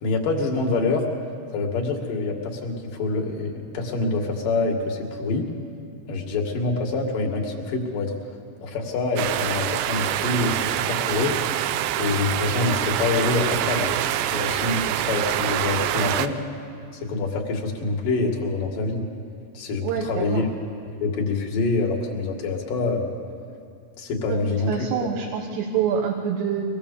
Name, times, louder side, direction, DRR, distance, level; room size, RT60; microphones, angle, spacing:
voice 1, 0.0-1.1 1.5-5.4 6.1-8.1 8.6-11.4 12.0-14.0 14.2-16.4 17.0-19.1 19.5-20.5 21.0-23.1 24.0-25.1, left 3 dB, 50° left, 0 dB, 3.2 m, -26 dB
sound 1, 9.2-16.3, right 12 dB, 85° right, 2.5 m, -25 dB
voice 2, 19.8-20.4 24.3-24.4 24.7-26.8, right 7 dB, 70° right, 1 dB, 3.0 m, -26 dB
24.5 x 20.0 x 7.0 m, 2.7 s
omnidirectional pair, 5.8 m